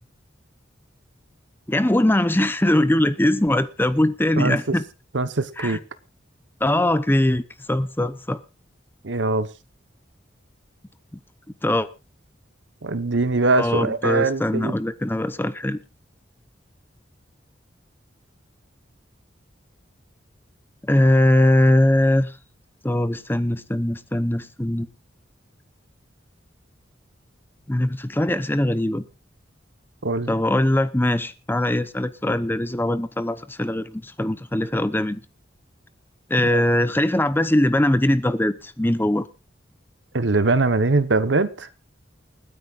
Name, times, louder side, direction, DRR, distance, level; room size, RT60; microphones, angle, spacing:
voice 1, 1.7-4.8 5.6-5.8 6.6-7.4 7.7-8.4 11.6-11.9 13.6-15.8 20.8-22.3 22.8-24.9 27.7-29.0 30.3-35.2 36.3-39.3, left 1 dB, 10° left, 0.7 m, -21 dB
voice 2, 5.1-5.8 9.0-9.5 12.8-14.7 30.0-30.3 36.5-36.6 40.1-41.7, right 3 dB, 70° right, 1.1 m, -22 dB
29.0 x 9.7 x 2.5 m
head